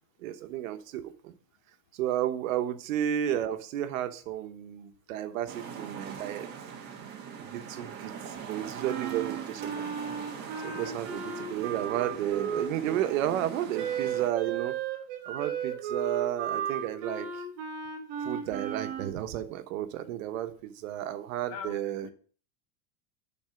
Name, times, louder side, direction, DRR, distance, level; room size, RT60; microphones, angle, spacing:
voice 1, 0.2-1.3 1.9-6.5 7.4-9.9 10.6-14.8 15.3-17.4 18.2-22.1, right 11 dB, 75° right, 1.2 m, -32 dB
sound 1, 5.5-14.3, right 7 dB, 25° right, 1.3 m, -42 dB
Wind instrument woodwind instrument, 8.9-13.0 13.7-19.1, right 7 dB, 55° right, 1.8 m, -35 dB
voice 2, 21.5-22.1, left 7 dB, 30° left, 0.4 m, -41 dB
11.5 x 4.3 x 5.1 m
supercardioid pair, 175°, 40 cm